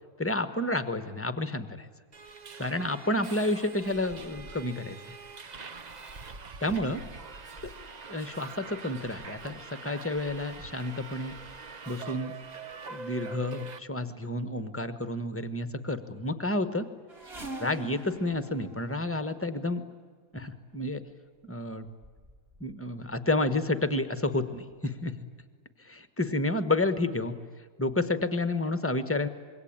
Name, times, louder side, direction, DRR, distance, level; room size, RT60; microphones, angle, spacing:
voice 1, 0.2-1.9 2.6-5.0 6.6-7.0 7.6-7.7 8.1-11.3 11.9-12.3 12.9-16.9 17.6-19.8 20.3-21.0 21.4-21.9 22.6-25.1 25.8-27.3 27.8-29.3, left 2 dB, 10° left, 10 dB, 1.0 m, -30 dB
Subway metro underground, 2.1-13.8, right 4 dB, 55° right, 0.4 m, -44 dB
sound 1, 17.1-19.6 20.5-20.8 21.5-21.6 21.8-22.7 23.0-23.6 24.3-24.4 24.7-24.8, right 2 dB, 30° right, 2.4 m, -44 dB
26.0 x 22.5 x 8.9 m, 1.5 s
omnidirectional pair, 2.1 m